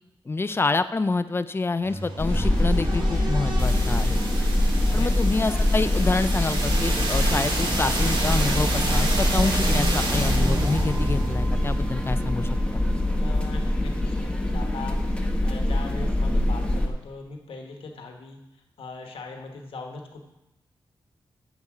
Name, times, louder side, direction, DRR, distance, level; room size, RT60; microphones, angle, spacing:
voice 1, 0.3-4.2 4.9-12.8, left 3 dB, 25° left, 13 dB, 0.4 m, -27 dB
sound 1, 1.8-13.7, right 2 dB, 60° right, 1.9 m, -29 dB
sound 2, 2.2-16.9, left 1 dB, 10° left, 1.0 m, -24 dB
voice 2, 4.9-5.5 13.2-15.0 15.4-18.4 18.8-20.2, left 3 dB, 85° left, 3 dB, 1.2 m, -40 dB
9.7 x 7.2 x 4.9 m, 0.93 s
wide cardioid pair, 100°, 9 cm